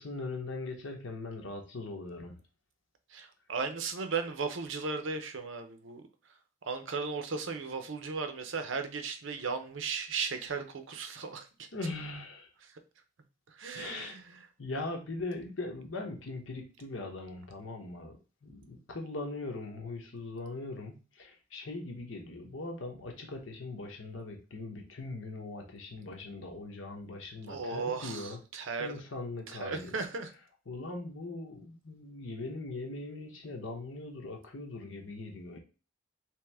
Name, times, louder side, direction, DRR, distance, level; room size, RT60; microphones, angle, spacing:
voice 1, 0.0-2.4 11.7-12.5 13.7-14.2 14.6-28.4 28.8-29.9 30.7-35.6, left 2 dB, 80° left, 3 dB, 0.9 m, -40 dB
voice 2, 3.1-6.0 6.6-11.7 12.6-12.7 13.5-14.5 27.5-29.0 29.5-30.3, right 4 dB, 75° right, 8 dB, 0.6 m, -36 dB
3.4 x 3.0 x 3.4 m, 0.34 s
head